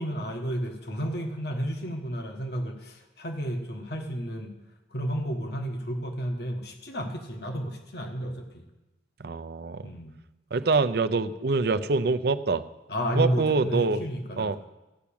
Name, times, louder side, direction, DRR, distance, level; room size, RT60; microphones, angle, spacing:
voice 1, 0.0-4.5 4.9-8.6 9.8-10.2 12.9-14.6, equal, 60° left, 3 dB, 1.3 m, -32 dB
voice 2, 9.2-9.9 10.5-12.6 13.1-14.0 14.4-14.6, right 3 dB, 60° right, 11 dB, 0.6 m, -25 dB
15.0 x 5.9 x 8.6 m, 1.0 s
head